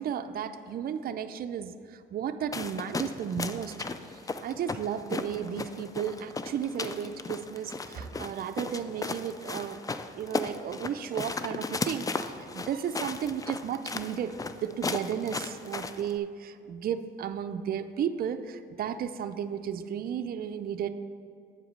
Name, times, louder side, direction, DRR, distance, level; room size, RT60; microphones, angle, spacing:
voice 1, 0.0-3.8 4.1-9.8 10.1-20.9, right 8 dB, 50° right, 9 dB, 0.4 m, -34 dB
sound 1, 2.5-16.1, left 3 dB, 20° left, 0.3 m, -36 dB
8.0 x 4.9 x 5.3 m, 2.5 s
cardioid pair, 90°, 20 cm